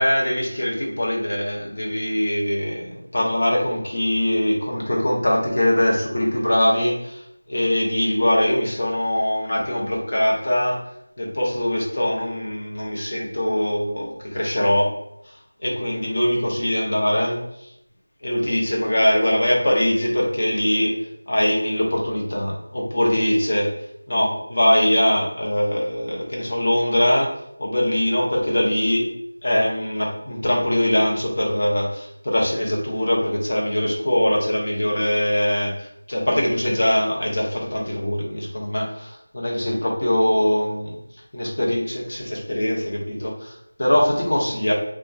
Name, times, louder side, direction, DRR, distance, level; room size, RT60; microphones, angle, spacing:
voice 1, 0.0-10.8 11.2-15.0 15.3-15.4 15.6-17.7 18.2-20.9 21.3-23.7 24.1-27.3 27.6-29.1 29.4-41.0 41.3-44.7, left 1 dB, 45° left, -3 dB, 0.7 m, -22 dB
2.6 x 2.1 x 2.3 m, 0.77 s
figure-of-eight pair, 175°, 0 cm